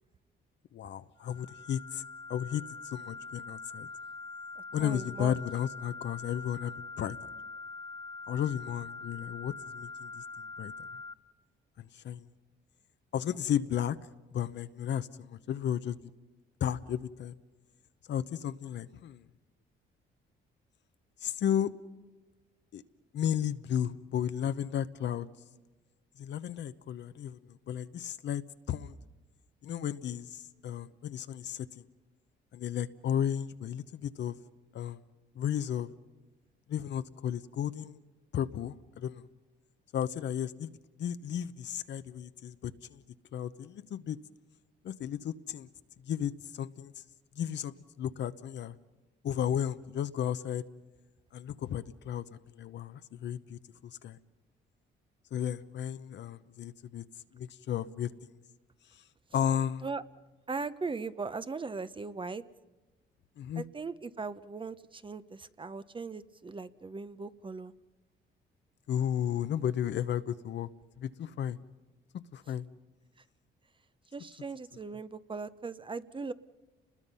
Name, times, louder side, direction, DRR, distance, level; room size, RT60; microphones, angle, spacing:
voice 1, 0.7-2.0 2.3-3.9 4.7-7.2 8.3-10.7 11.8-12.2 13.1-14.0 14.3-16.0 16.6-17.3 18.1-19.2 21.2-21.7 22.7-22.8 23.1-25.3 26.2-28.4 28.7-29.0 29.6-31.8 32.5-34.4 34.7-35.0 35.4-35.9 36.7-38.0 38.3-39.2 39.9-40.7 41.0-43.0 43.3-44.2 44.8-45.7 46.0-46.9 47.4-48.8 49.2-50.6 51.3-54.2 55.3-57.0 57.3-58.1 59.3-59.8 63.4-63.6 68.9-70.7 71.0-71.6 72.3-72.7, left 9 dB, 65° left, 12 dB, 0.9 m, -34 dB
sound 1, 1.2-11.1, left 3 dB, 20° left, 1.5 m, -44 dB
voice 2, 4.6-5.3 59.8-60.0 60.5-62.4 63.5-67.7 74.1-76.3, right 4 dB, 25° right, 14 dB, 0.7 m, -39 dB
30.0 x 21.0 x 5.6 m, 1.2 s
cardioid pair, 90°, 20 cm